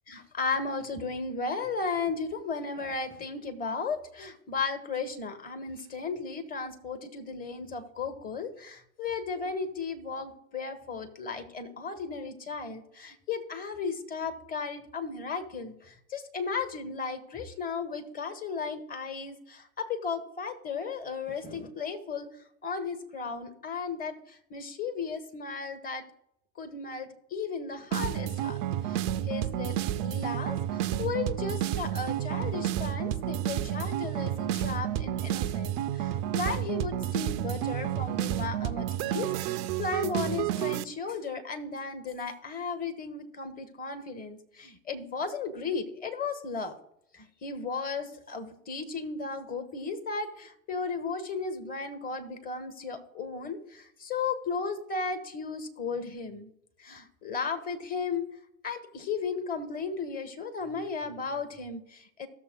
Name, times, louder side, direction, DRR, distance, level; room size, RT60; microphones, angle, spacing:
voice 1, 0.1-22.3 22.6-24.2 24.5-26.0 26.6-46.7 47.1-56.5 56.8-58.2 58.6-62.3, left 4 dB, 20° left, 8 dB, 1.2 m, -35 dB
sound 1, 27.9-40.8, right 11 dB, 35° right, 0.4 m, -30 dB
15.0 x 6.8 x 2.3 m, 0.74 s
hypercardioid pair, 100°, 42 cm